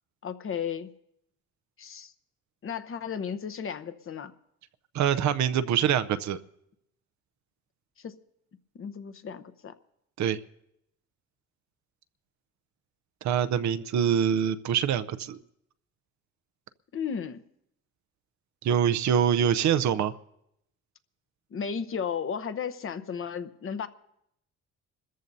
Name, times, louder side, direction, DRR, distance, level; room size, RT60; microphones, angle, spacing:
voice 1, 0.2-0.9 1.8-2.1 2.6-4.3 8.0-8.1 8.7-9.7 16.9-17.4 21.5-23.9, left 7 dB, 45° left, 11 dB, 0.9 m, -34 dB
voice 2, 4.9-6.4 10.2-10.4 13.2-15.4 18.6-20.1, right 8 dB, 70° right, 12 dB, 0.7 m, -25 dB
27.5 x 14.0 x 2.7 m, 0.77 s
cardioid pair, 90°, 30 cm